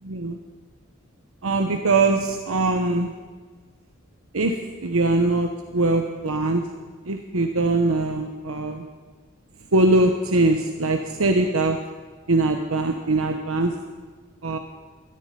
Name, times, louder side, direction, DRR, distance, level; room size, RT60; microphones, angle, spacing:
voice 1, 0.0-0.4 1.4-3.1 4.3-6.6 7.1-8.9 9.7-11.8 12.3-13.7 14.4-14.6, right 2 dB, 80° right, 5 dB, 1.0 m, -22 dB
17.5 x 13.0 x 5.4 m, 1.4 s
head